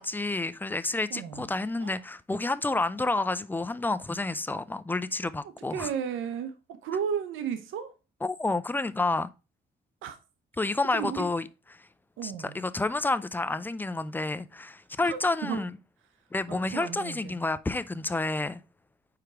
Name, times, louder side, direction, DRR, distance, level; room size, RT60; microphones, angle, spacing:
voice 1, 0.0-5.9 8.2-9.3 10.6-11.5 11.7-11.8 12.2-15.7 16.3-18.6, left 2 dB, 10° left, 0.4 m, -29 dB
voice 2, 1.1-1.5 1.8-2.0 5.4-7.9 10.0-10.2 10.9-11.2 12.2-12.6 15.0-15.6 16.5-17.4, right 8 dB, 85° right, 0.8 m, -34 dB
4.8 x 4.6 x 4.8 m
cardioid pair, 90°, 20 cm